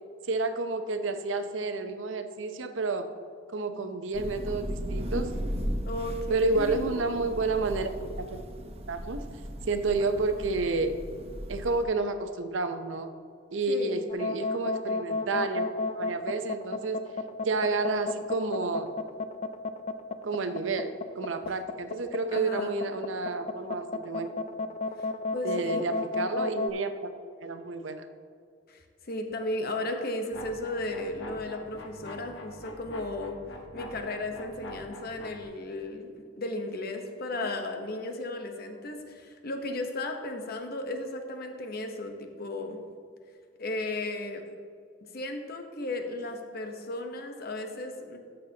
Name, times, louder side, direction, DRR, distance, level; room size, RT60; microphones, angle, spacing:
voice 1, 0.3-3.1 3.5-5.3 6.3-8.4 8.9-9.2 9.7-11.0 11.5-13.1 13.5-15.7 15.9-17.0 17.4-18.9 20.2-20.9 21.2-24.3 25.4-27.1 27.4-28.1 37.3-37.5, right 3 dB, 80° right, 8 dB, 0.7 m, -30 dB
Thunder / Rain, 4.1-11.8, equal, 35° right, 0.7 m, -36 dB
voice 2, 5.8-7.0 13.7-14.0 22.3-22.8 25.0-25.8 28.7-33.4 33.7-42.8 43.6-44.4 45.1-48.2, left 2 dB, 55° left, 4 dB, 0.9 m, -35 dB
sound 1, 14.1-26.7, left 3 dB, 35° left, 0.4 m, -32 dB
sound 2, 30.3-35.4, left 1 dB, 75° left, 1.2 m, -44 dB
13.5 x 6.6 x 2.8 m, 2.2 s
head